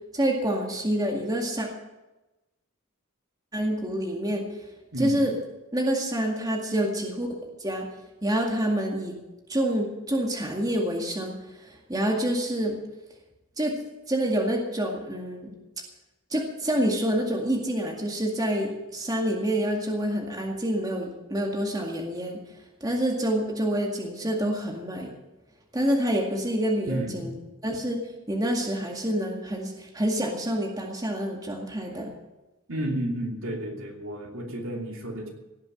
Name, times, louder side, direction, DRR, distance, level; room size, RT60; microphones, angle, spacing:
voice 1, 0.1-1.7 3.5-4.5 5.0-5.3 5.7-7.3 7.6-7.9 8.2-9.2 9.5-12.8 13.6-13.8 14.1-15.5 16.3-22.4 22.8-25.1 25.7-27.3 27.6-28.0 28.3-32.1, right 1 dB, 20° right, 0 dB, 2.0 m, -27 dB
voice 2, 4.9-5.2 26.9-27.5 32.7-35.3, right 1 dB, 70° right, 1 dB, 2.9 m, -32 dB
17.5 x 7.4 x 9.0 m, 1.0 s
head